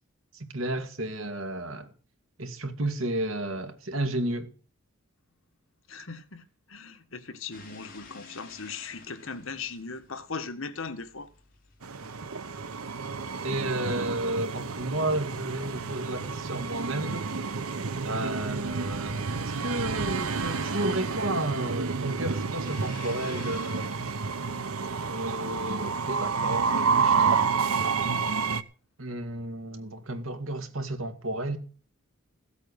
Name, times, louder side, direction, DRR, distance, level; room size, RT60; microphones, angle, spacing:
voice 1, 0.3-1.9 2.4-4.5 13.4-17.4 18.0-24.2 25.1-27.3 29.0-31.6, right 1 dB, 70° right, 2.3 m, -32 dB
voice 2, 5.9-11.3, left 4 dB, 70° left, 1.6 m, -39 dB
sound 1, 7.5-26.0, left 4 dB, 40° left, 3.3 m, -53 dB
Train, 11.8-28.6, right 5 dB, 85° right, 1.0 m, -29 dB
16.0 x 8.3 x 6.5 m
head